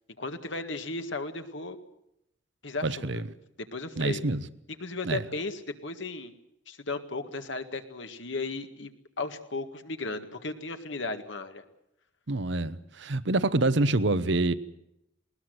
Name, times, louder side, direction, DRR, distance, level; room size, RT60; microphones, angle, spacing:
voice 1, 0.2-1.8 2.6-3.1 3.7-4.2 4.8-6.3 6.7-8.9 9.2-11.6, left 3 dB, 70° left, 1.9 m, -35 dB
voice 2, 2.8-3.2 4.0-4.4 5.0-5.2 12.3-14.5, right 2 dB, 65° right, 1.0 m, -26 dB
20.0 x 20.0 x 7.9 m
head